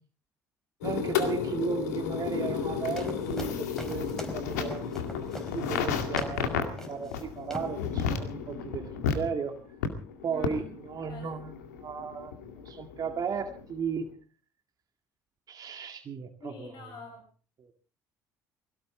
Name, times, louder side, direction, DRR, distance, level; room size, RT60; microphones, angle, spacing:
sound 1, 0.8-14.0, left 7 dB, 85° left, 2.1 m, -33 dB
voice 1, 0.8-4.9 5.5-9.6 10.2-11.6 11.8-12.4 12.7-14.1 15.5-16.9 17.6-17.7, right 6 dB, 45° right, 4 dB, 2.0 m, -35 dB
sound 2, 3.0-6.5 6.8-7.2 7.5-7.8, equal, 5° left, 4.7 m, -42 dB
voice 2, 10.3-10.7 11.1-11.3 16.4-17.2, left 3 dB, 60° left, 3 dB, 5.7 m, -44 dB
22.5 x 17.5 x 3.7 m, 0.41 s
hypercardioid pair, 55°, 9 cm